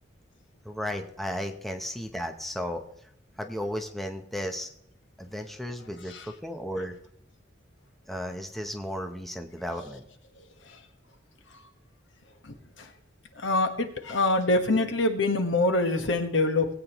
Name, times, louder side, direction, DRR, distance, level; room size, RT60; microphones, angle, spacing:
voice 1, 0.6-2.8 3.4-4.7 5.2-6.9 8.1-10.0, equal, ahead, 5 dB, 0.7 m, -34 dB
voice 2, 12.4-12.9 13.4-16.7, left 2 dB, 65° left, 7 dB, 1.3 m, -25 dB
19.5 x 8.5 x 3.0 m, 0.73 s
head